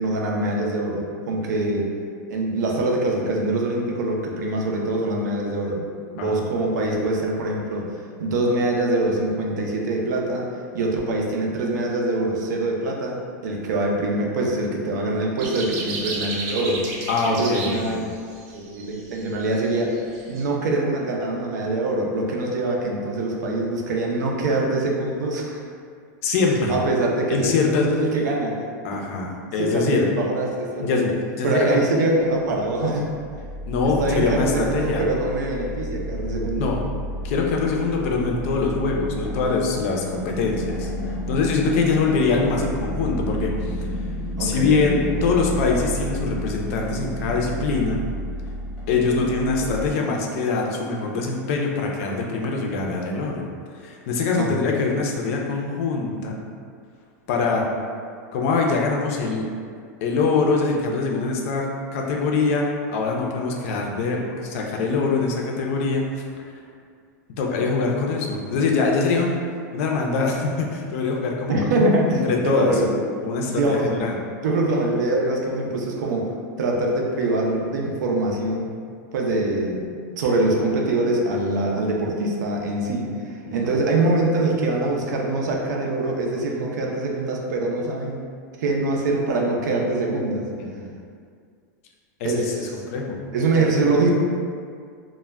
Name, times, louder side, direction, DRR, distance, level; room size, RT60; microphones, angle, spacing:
voice 1, 0.0-1.9 2.3-5.8 6.1-10.5 10.7-18.0 18.5-25.6 26.7-27.5 27.8-28.7 29.6-31.1 31.4-33.1 33.8-36.7 44.4-44.7 49.6-49.7 54.4-54.6 71.5-73.0 73.4-74.0 74.4-78.7 79.1-88.2 88.6-90.5 92.2-92.7 93.3-94.1, right 2 dB, 85° right, -1 dB, 0.5 m, -24 dB
sound 1, 15.4-20.4, right 3 dB, 30° right, 0.4 m, -33 dB
voice 2, 17.1-18.0 26.2-26.8 27.3-27.9 28.8-30.1 30.8-31.8 33.7-35.0 36.5-36.8 37.2-43.9 44.4-48.0 48.9-53.4 53.8-56.4 57.3-57.7 58.3-59.5 60.0-61.7 61.9-66.2 67.4-69.4 69.7-71.6 72.1-72.7 73.2-74.2 90.6-90.9 92.2-92.6 92.9-93.2, left 4 dB, 50° left, 0 dB, 0.4 m, -23 dB
sound 2, 32.5-49.9, equal, 5° right, 0.8 m, -31 dB
2.2 x 2.0 x 3.3 m, 2.2 s
supercardioid pair, 155°, 9 cm